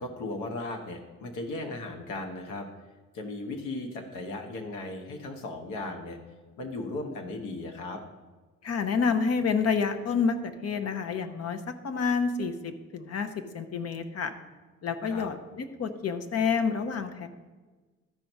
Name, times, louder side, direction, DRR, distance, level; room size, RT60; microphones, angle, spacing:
voice 1, 0.0-2.7 3.1-6.2 6.6-8.0 15.1-15.3, left 2 dB, 85° left, 3 dB, 1.2 m, -36 dB
voice 2, 8.6-13.3 13.5-14.3 14.8-17.3, left 5 dB, 55° left, 9 dB, 0.9 m, -28 dB
12.5 x 4.5 x 5.4 m, 1.3 s
cardioid pair, 90°, 30 cm